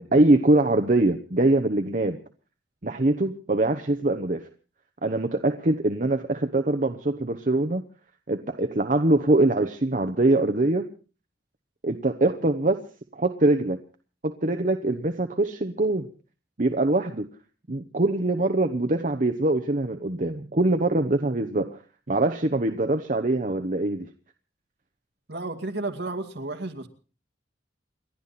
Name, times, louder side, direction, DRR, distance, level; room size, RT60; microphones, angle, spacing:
voice 1, 0.0-2.2 2.8-4.4 5.0-7.8 8.3-10.9 11.8-12.8 13.1-13.8 14.2-16.1 16.6-17.3 17.7-21.8 22.1-24.1, right 2 dB, 45° right, 7 dB, 1.0 m, -23 dB
voice 2, 25.3-26.9, right 2 dB, 65° right, 5 dB, 2.4 m, -32 dB
29.5 x 11.5 x 4.2 m, 0.38 s
head